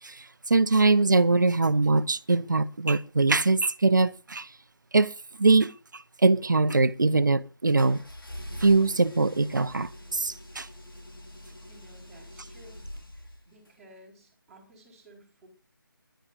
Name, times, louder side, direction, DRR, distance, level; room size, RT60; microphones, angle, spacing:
voice 1, 0.0-4.5 4.9-8.0 8.6-10.7, right 3 dB, 55° right, 0.8 m, -23 dB
sound 1, 7.8-13.7, left 1 dB, 75° left, 5.5 m, -44 dB
voice 2, 11.7-12.9 13.4-15.5, right 1 dB, ahead, 4.4 m, -54 dB
28.5 x 11.5 x 2.7 m
figure-of-eight pair, 155°, 12 cm